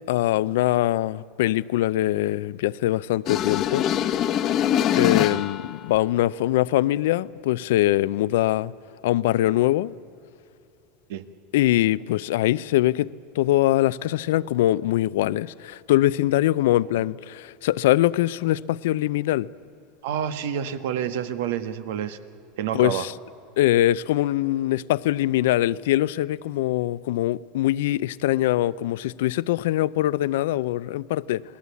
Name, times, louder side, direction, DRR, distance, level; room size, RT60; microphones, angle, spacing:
voice 1, 0.0-3.9 4.9-8.7 9.0-9.9 11.5-13.1 13.3-19.5 22.7-23.1 23.6-31.4, left 14 dB, 85° left, 0.6 m, -22 dB
sound 1, 3.3-5.7, left 10 dB, 40° left, 1.0 m, -23 dB
voice 2, 20.0-22.2 22.6-23.1, right 9 dB, 80° right, 1.5 m, -28 dB
29.0 x 20.0 x 8.4 m
supercardioid pair, 150°, 0 cm